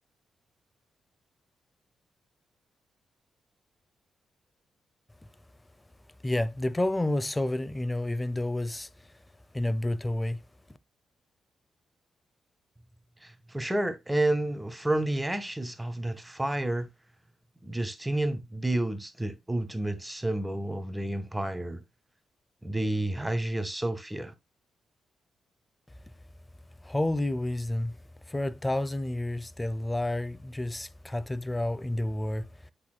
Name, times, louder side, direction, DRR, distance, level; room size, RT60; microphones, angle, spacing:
voice 1, 6.2-8.9 9.5-10.4 26.8-28.0 28.3-32.7, left 1 dB, 15° left, 0.7 m, -30 dB
voice 2, 13.2-16.9 17.6-21.8 22.6-24.3, right 1 dB, 10° right, 1.3 m, -30 dB
8.3 x 6.4 x 2.3 m
supercardioid pair, 60°, 0 cm